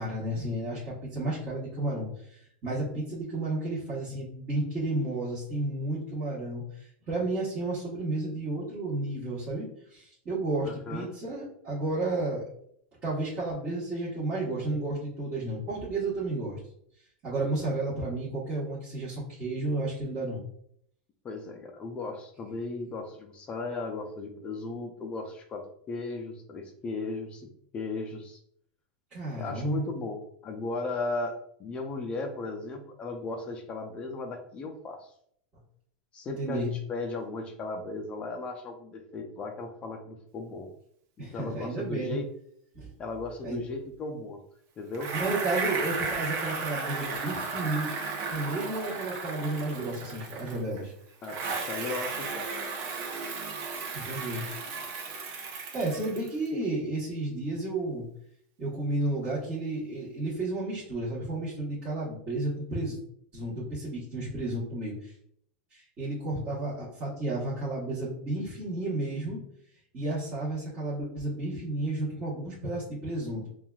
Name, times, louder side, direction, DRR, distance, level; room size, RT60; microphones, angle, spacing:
voice 1, 0.0-12.4 13.0-16.6 17.2-20.4 29.1-29.9 36.4-36.7 41.2-42.2 42.7-42.9 43.4-43.6 45.1-47.9 48.3-50.9 53.9-54.4 55.7-58.0 58.6-63.0 63.3-65.1 65.7-69.4 69.9-73.5, right 2 dB, 25° right, -9 dB, 1.1 m, -32 dB
voice 2, 10.6-11.1 21.2-28.4 29.4-35.1 36.1-40.7 41.2-42.3 43.0-44.4 44.8-45.1 51.2-52.5, left 3 dB, 20° left, 4 dB, 0.4 m, -36 dB
Bicycle, 44.9-50.8 51.2-56.5, right 4 dB, 55° right, 0.9 m, -34 dB
5.5 x 2.3 x 2.3 m, 0.67 s
supercardioid pair, 155°, 5 cm